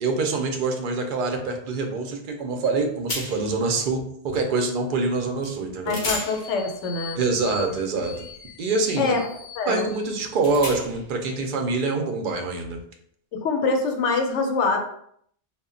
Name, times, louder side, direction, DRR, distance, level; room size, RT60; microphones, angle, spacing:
voice 1, 0.0-6.0 7.1-8.3 8.6-9.1 9.7-12.8, right 3 dB, 55° right, 3 dB, 0.6 m, -25 dB
sound 1, 2.6-2.8 3.1-3.6 5.4-5.5 5.9-11.2, left 3 dB, 50° left, 0.6 m, -36 dB
voice 2, 5.9-7.2 9.0-9.3 9.6-9.9 13.3-14.8, left 4 dB, 85° left, 4 dB, 0.9 m, -24 dB
2.1 x 2.0 x 3.6 m, 0.67 s
omnidirectional pair, 1.2 m